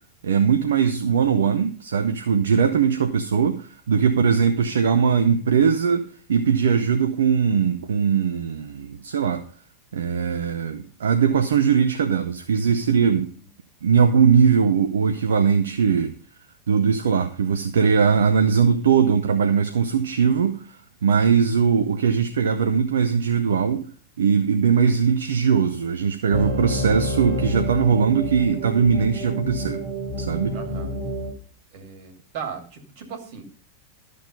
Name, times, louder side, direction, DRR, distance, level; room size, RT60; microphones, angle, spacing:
voice 1, 0.2-9.4 9.9-13.3 13.8-16.1 16.7-23.9 24.2-29.8 30.2-30.6, right 6 dB, 65° right, 0.7 m, -20 dB
sound 1, 26.3-31.3, left 1 dB, 5° left, 4.3 m, -29 dB
voice 2, 30.5-31.0 31.7-33.4, right 6 dB, 50° right, 2.6 m, -37 dB
12.5 x 6.6 x 5.3 m
figure-of-eight pair, 90°, 0 cm